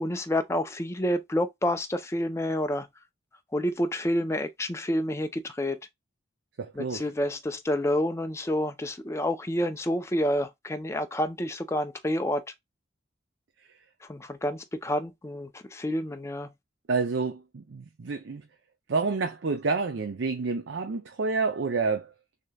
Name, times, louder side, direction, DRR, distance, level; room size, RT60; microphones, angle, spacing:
voice 1, 0.0-2.9 3.5-5.8 6.8-12.4 14.1-16.5, left 1 dB, 15° left, 0.5 m, -29 dB
voice 2, 6.6-7.0 16.9-18.5 18.9-22.1, right 4 dB, 70° right, 0.6 m, -29 dB
6.4 x 2.9 x 2.3 m
head